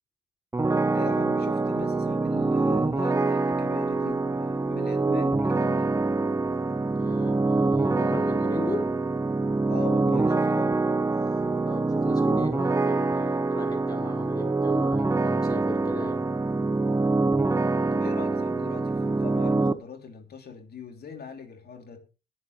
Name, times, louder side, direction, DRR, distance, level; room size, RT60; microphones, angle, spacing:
sound 1, 0.5-19.7, right 3 dB, 15° right, 0.9 m, -25 dB
voice 1, 0.9-5.9 9.7-10.8 17.9-22.0, left 6 dB, 50° left, 2.9 m, -41 dB
voice 2, 6.9-8.9 11.6-16.2, left 2 dB, 20° left, 4.9 m, -37 dB
21.0 x 7.2 x 3.1 m
cardioid pair, 90°, 20 cm